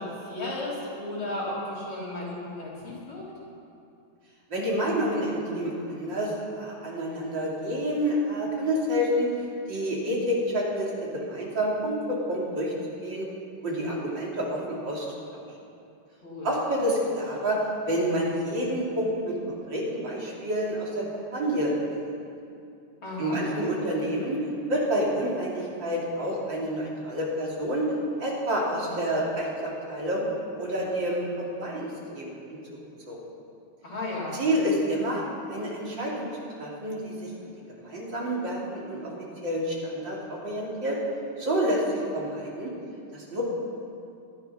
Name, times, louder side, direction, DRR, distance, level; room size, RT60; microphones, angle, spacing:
voice 1, 0.0-3.2 16.2-16.5 23.0-23.4 33.8-34.4, left 2 dB, 75° left, -7 dB, 5.1 m, -34 dB
voice 2, 4.5-9.3 9.7-12.7 13.0-13.3 13.6-15.1 15.3-15.4 16.4-17.6 17.8-22.1 23.2-27.9 28.2-30.2 30.6-32.4 33.1-33.2 34.3-35.2 35.5-36.3 36.6-37.3 37.6-39.1 39.4-41.0 41.4-41.8 42.1-42.7 43.1-43.4, equal, 60° right, -4 dB, 3.8 m, -28 dB
18.5 x 13.0 x 5.8 m, 2.6 s
omnidirectional pair, 2.3 m